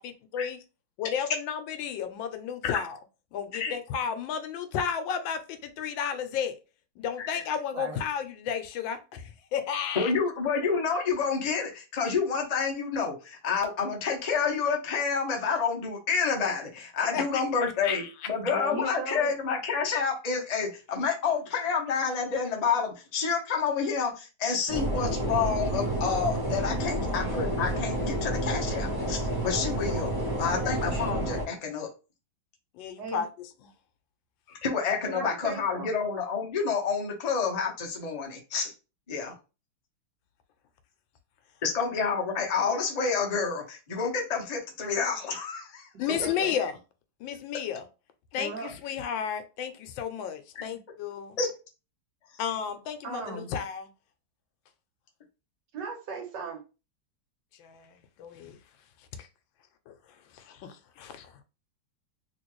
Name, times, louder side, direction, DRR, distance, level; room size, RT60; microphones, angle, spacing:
voice 1, 0.0-0.6 1.0-3.0 3.3-6.5 7.0-10.1 17.1-17.3 17.8-18.1 26.9-27.2 30.6-30.8 32.7-33.5 46.0-46.8 47.2-47.9 48.3-51.4 52.4-53.9 57.6-58.6 59.0-59.3 59.9-61.4, left 7 dB, 85° left, 1.3 m, -33 dB
voice 2, 10.0-31.9 34.5-38.7 39.1-39.3 41.6-45.9 50.6-50.7 51.4-51.5, left 5 dB, 55° left, 0.4 m, -29 dB
voice 3, 18.5-19.3 33.0-33.2 35.1-35.9 46.2-46.5 48.4-48.7 53.0-53.5 55.7-56.6, right 4 dB, 65° right, 1.6 m, -37 dB
sound 1, 24.7-31.4, right 1 dB, 35° right, 0.3 m, -30 dB
3.1 x 2.9 x 3.0 m
omnidirectional pair, 2.0 m